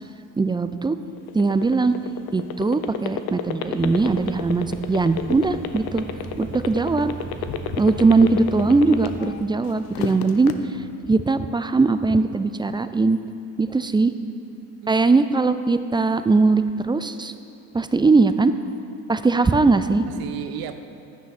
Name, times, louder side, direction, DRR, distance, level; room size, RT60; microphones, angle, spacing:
voice 1, 0.4-1.0 1.3-1.9 2.3-6.0 6.4-7.1 7.8-10.5 11.1-13.2 13.6-14.1 14.9-17.3 17.7-18.5 19.1-20.0, right 3 dB, 10° right, 11 dB, 0.4 m, -20 dB
sound 1, 1.2-9.4 9.8-10.5, left 11 dB, 70° left, 0.8 m, -29 dB
sound 2, 3.8-9.2, right 3 dB, 30° right, 1.4 m, -37 dB
voice 2, 14.1-15.1 20.1-20.7, right 10 dB, 65° right, 9 dB, 0.7 m, -36 dB
11.5 x 9.2 x 4.2 m, 2.7 s
supercardioid pair, 70°, 39 cm